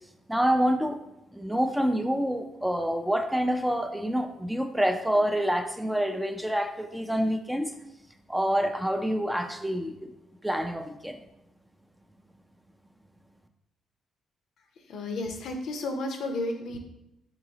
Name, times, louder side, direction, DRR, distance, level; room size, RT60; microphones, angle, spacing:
voice 1, 0.3-1.0 1.3-7.7 8.3-10.1 10.4-11.2, equal, 5° right, 5 dB, 0.4 m, -27 dB
voice 2, 14.9-16.8, left 2 dB, 70° left, 4 dB, 0.6 m, -32 dB
3.9 x 3.8 x 2.8 m, 0.86 s
cardioid pair, 90°, 0 cm